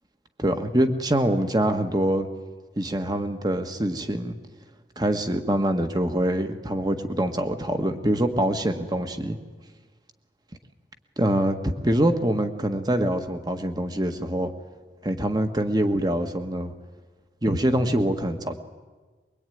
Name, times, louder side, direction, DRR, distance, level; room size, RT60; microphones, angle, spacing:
voice 1, 0.4-2.3 2.8-4.3 5.0-9.4 11.2-14.5 15.0-16.7 17.4-18.6, right 1 dB, 25° right, 7 dB, 1.6 m, -24 dB
23.5 x 22.5 x 9.4 m, 1.4 s
head